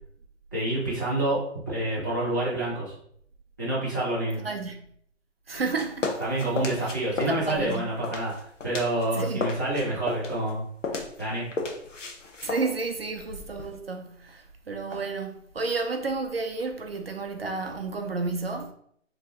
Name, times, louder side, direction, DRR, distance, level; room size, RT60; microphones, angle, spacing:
voice 1, 0.5-2.9 3.6-4.4 6.2-8.3 8.6-10.6 11.2-11.5, right 1 dB, 15° left, 0.6 m, -28 dB
voice 2, 4.4-4.9 5.5-6.1 6.8-6.9 7.3-7.9 9.1-9.5 12.4-18.7, right 4 dB, 50° right, 0.5 m, -31 dB
sound 1, 5.5-9.1 9.3-13.8, left 3 dB, 75° left, 1.0 m, -34 dB
4.6 x 3.1 x 2.9 m
hypercardioid pair, 170°, 38 cm